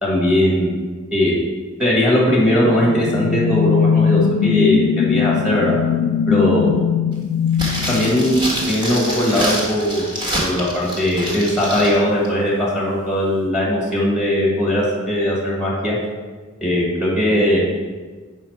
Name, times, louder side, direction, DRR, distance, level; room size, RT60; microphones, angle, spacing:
voice 1, 0.0-0.8 1.1-1.4 1.8-5.7 6.3-6.7 7.9-8.4 8.7-10.1 10.4-16.0 16.6-17.6, left 1 dB, 5° right, -4 dB, 1.5 m, -19 dB
sound 1, 2.4-8.9, left 7 dB, 80° left, 0.3 m, -20 dB
sound 2, 7.5-12.0 12.2-12.3, right 1 dB, 25° right, 1.3 m, -26 dB
6.3 x 4.5 x 4.6 m, 1.4 s
head